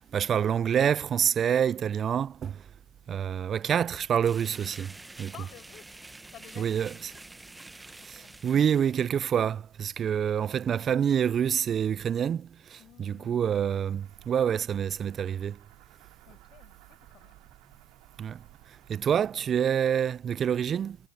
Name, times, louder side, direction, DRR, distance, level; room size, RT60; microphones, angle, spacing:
voice 1, 0.1-2.6 3.1-4.9 5.2-5.3 6.6-7.1 8.1-15.6 18.2-18.4 18.9-21.0, right 8 dB, 25° right, 0.3 m, -27 dB
sound 1, 4.2-9.3, right 2 dB, 5° right, 0.9 m, -48 dB
voice 2, 5.3-6.0 6.3-7.2 8.0-8.4 12.8-13.5 16.3-17.5, left 13 dB, 40° left, 5.2 m, -52 dB
sound 2, 14.0-19.3, right 26 dB, 55° right, 2.4 m, -56 dB
hypercardioid pair, 115°, 0 cm